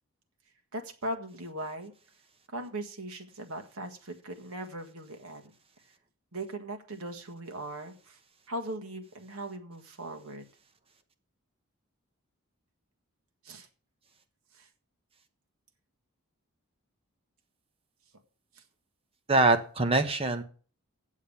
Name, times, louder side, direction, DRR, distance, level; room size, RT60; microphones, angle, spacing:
voice 1, 0.7-1.9 2.5-5.5 6.3-8.2 8.5-10.5 13.4-13.7 14.5-14.7 18.5-18.6, right 1 dB, 75° right, 5 dB, 1.6 m, -39 dB
voice 2, 19.3-20.4, right 2 dB, 25° right, 8 dB, 0.9 m, -24 dB
8.6 x 7.3 x 7.1 m, 0.41 s
head